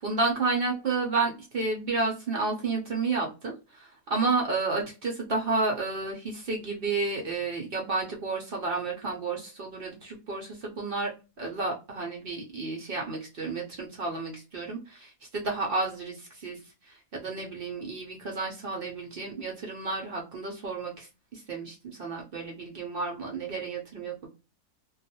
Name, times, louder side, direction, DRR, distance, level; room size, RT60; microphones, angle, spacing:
voice 1, 0.0-3.5 4.1-11.1 11.4-16.6 17.1-21.1 21.3-24.3, right 3 dB, 60° right, 0 dB, 0.6 m, -31 dB
2.3 x 2.3 x 2.8 m, 0.30 s
omnidirectional pair, 1.7 m